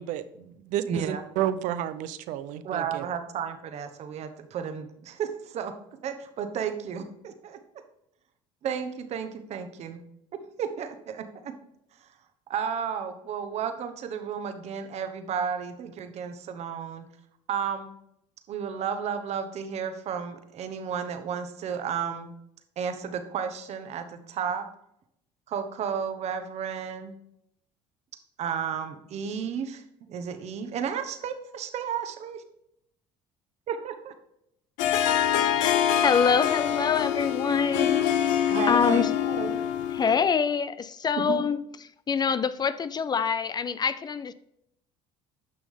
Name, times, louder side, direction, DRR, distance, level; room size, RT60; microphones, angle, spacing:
voice 1, 0.0-3.0, right 11 dB, 70° right, 14 dB, 0.7 m, -31 dB
voice 2, 0.9-1.2 2.6-5.8 6.0-7.6 8.6-10.0 10.6-11.5 12.0-12.1 12.5-17.1 17.5-17.9 18.5-22.3 22.8-24.7 25.5-27.2 28.4-32.4 33.7-34.1 38.5-39.6 41.2-41.5, right 7 dB, 55° right, 8 dB, 1.2 m, -33 dB
Harp, 34.8-40.3, left 10 dB, 75° left, 0.7 m, -25 dB
voice 3, 35.6-39.1 39.9-41.6 42.1-44.3, left 6 dB, 30° left, 15 dB, 0.5 m, -26 dB
9.8 x 6.1 x 3.6 m, 0.77 s
supercardioid pair, 80°, 13 cm